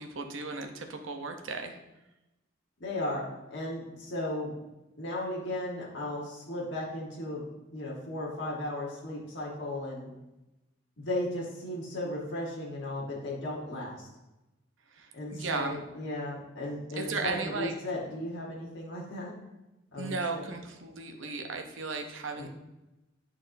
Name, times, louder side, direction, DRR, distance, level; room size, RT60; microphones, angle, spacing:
voice 1, 0.0-1.7 14.9-15.8 16.9-17.7 20.0-22.5, right 4 dB, 65° right, 5 dB, 0.7 m, -35 dB
voice 2, 2.8-4.5 5.0-7.4 7.7-10.1 11.0-14.1 15.1-19.3 19.9-20.4, left 1 dB, 55° left, -5 dB, 1.3 m, -35 dB
9.4 x 4.3 x 2.6 m, 0.98 s
head